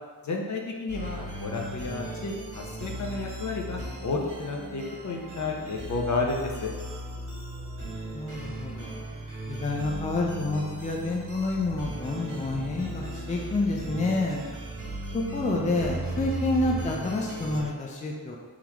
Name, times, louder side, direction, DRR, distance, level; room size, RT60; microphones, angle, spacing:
voice 1, 0.2-6.7, left 3 dB, 55° left, 1 dB, 0.7 m, -31 dB
sound 1, 0.9-17.6, right 1 dB, 40° right, 1.4 m, -37 dB
voice 2, 8.1-9.0 9.5-14.4 15.1-18.4, left 2 dB, 20° left, -1 dB, 0.4 m, -28 dB
3.9 x 3.0 x 4.6 m, 1.5 s
wide cardioid pair, 165°, 34 cm